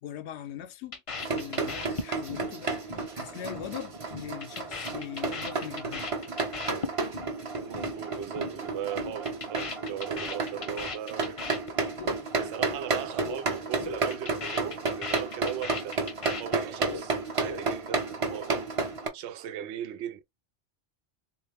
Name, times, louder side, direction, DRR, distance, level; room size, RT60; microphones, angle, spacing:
voice 1, 0.0-6.2, left 10 dB, 80° left, 0.9 m, -41 dB
sound 1, 0.9-2.5 2.7-3.1 3.3-3.7 4.0-7.3 7.6-7.9 8.2-8.5 8.8-12.2 12.4-12.8 13.0-13.4 13.7-17.0 17.3-17.9, left 4 dB, 35° left, 0.6 m, -37 dB
sound 2, 1.2-19.1, right 4 dB, 35° right, 0.7 m, -32 dB
voice 2, 7.6-11.6 12.4-16.1 16.4-18.7 19.1-20.2, right 10 dB, 80° right, 0.9 m, -38 dB
3.6 x 2.4 x 3.3 m
omnidirectional pair, 1.1 m